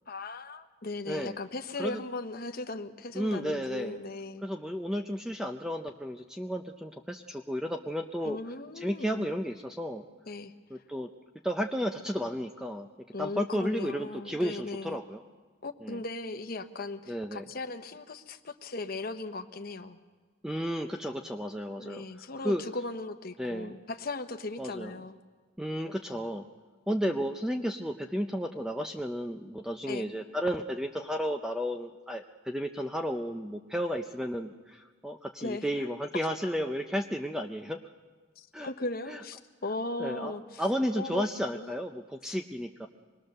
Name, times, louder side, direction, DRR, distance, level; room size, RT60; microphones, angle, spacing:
voice 1, 0.1-4.4 8.2-9.3 10.3-10.5 13.1-15.0 15.6-20.0 21.8-25.2 29.9-30.1 35.4-35.7 38.4-40.6 40.9-41.3 41.5-41.7, left 2 dB, 50° left, 8 dB, 1.0 m, -38 dB
voice 2, 1.1-1.4 1.8-2.0 3.1-4.0 4.4-8.4 8.8-10.0 10.7-11.1 11.4-12.9 13.2-15.2 15.8-16.0 17.1-17.5 20.4-22.6 23.4-23.8 24.6-25.0 25.6-26.4 26.9-37.8 38.5-38.7 39.1-39.2 40.0-42.9, equal, 5° right, 5 dB, 0.6 m, -33 dB
26.0 x 20.5 x 6.6 m, 1.4 s
head